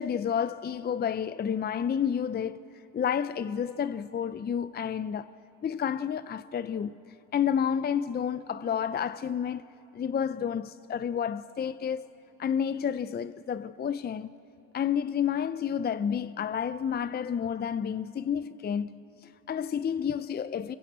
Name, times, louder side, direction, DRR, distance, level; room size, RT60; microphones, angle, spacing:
voice 1, 0.0-2.6 2.9-5.3 5.6-6.9 7.3-9.6 9.9-12.1 12.4-14.3 14.7-20.8, left 8 dB, 35° left, 0.5 m, -30 dB
24.5 x 22.5 x 8.0 m
cardioid pair, 90°, 30 cm